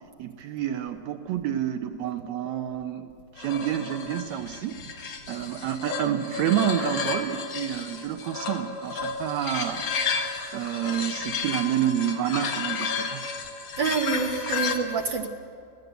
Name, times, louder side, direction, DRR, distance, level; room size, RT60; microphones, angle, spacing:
voice 1, 0.2-13.2 14.5-14.7, right 10 dB, 75° right, 7 dB, 2.1 m, -29 dB
sound 1, 3.4-14.8, left 5 dB, 55° left, 2.6 m, -32 dB
voice 2, 13.8-15.3, right 5 dB, 55° right, 3 dB, 1.3 m, -27 dB
25.0 x 17.0 x 8.1 m, 2.4 s
omnidirectional pair, 3.3 m